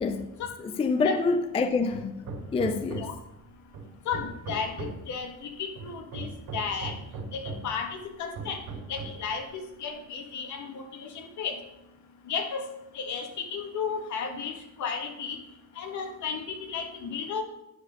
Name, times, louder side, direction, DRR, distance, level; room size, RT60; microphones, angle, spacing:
voice 1, 0.6-3.1, left 4 dB, 20° left, 0.4 m, -27 dB
Hammer, 1.9-3.3 3.7-5.1 5.8-7.8 8.4-9.3, right 4 dB, 75° right, 2.8 m, -39 dB
voice 2, 4.0-6.9 7.3-8.6 8.9-11.6 12.3-12.7 12.9-15.4 15.7-17.4, left 6 dB, 60° left, 1.6 m, -34 dB
9.8 x 4.2 x 6.3 m
cardioid pair, 130°, 33 cm